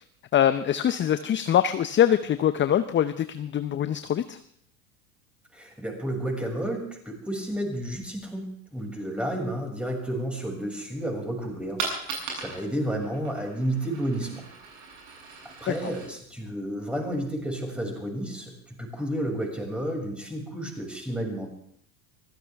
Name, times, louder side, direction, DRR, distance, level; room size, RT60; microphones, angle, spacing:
voice 1, 0.3-4.4, left 10 dB, 25° left, 12 dB, 0.7 m, -23 dB
voice 2, 5.5-14.4 15.6-21.5, right 1 dB, ahead, 0 dB, 6.4 m, -31 dB
Coin (dropping), 11.7-17.4, right 4 dB, 55° right, 7.8 m, -39 dB
24.0 x 16.0 x 3.5 m, 0.67 s
hypercardioid pair, 80°, 44 cm